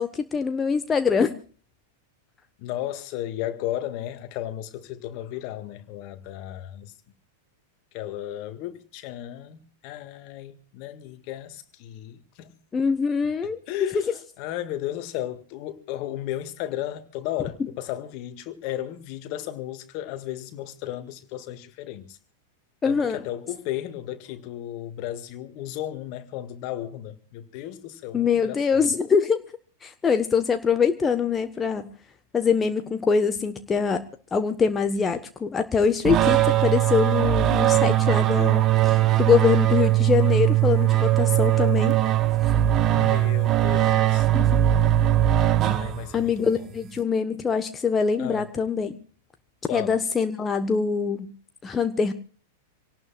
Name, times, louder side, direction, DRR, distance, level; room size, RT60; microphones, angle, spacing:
voice 1, 0.0-1.4 12.7-13.9 22.8-23.2 28.1-29.4 29.8-31.9 32.3-42.0 42.4-42.5 44.3-44.4 46.1-49.0 49.7-51.3 51.6-52.1, left 6 dB, 20° left, 1.1 m, -24 dB
voice 2, 2.6-6.9 7.9-12.5 13.7-22.2 22.8-28.9 42.9-44.3 45.7-46.7 48.2-48.5 49.7-50.0, left 13 dB, 45° left, 1.8 m, -34 dB
sound 1, 36.0-46.3, right 13 dB, 30° right, 1.4 m, -20 dB
26.5 x 18.0 x 2.4 m
figure-of-eight pair, 95°, 0 cm